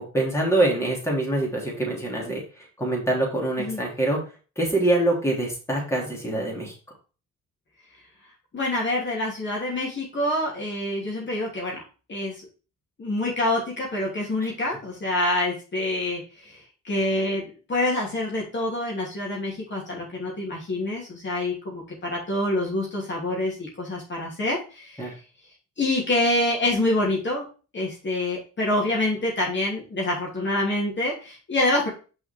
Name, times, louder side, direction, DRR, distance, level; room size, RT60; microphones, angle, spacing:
voice 1, 0.1-2.4 2.8-4.2 4.6-6.7 14.4-14.5 25.0-25.1, right 2 dB, 10° left, -3 dB, 3.1 m, -24 dB
voice 2, 8.5-11.8 12.1-12.5 13.0-25.1 25.8-27.4 27.7-31.9, left 1 dB, 40° left, -3 dB, 2.9 m, -26 dB
6.1 x 4.9 x 4.5 m, 0.36 s
cardioid pair, 90°, 30 cm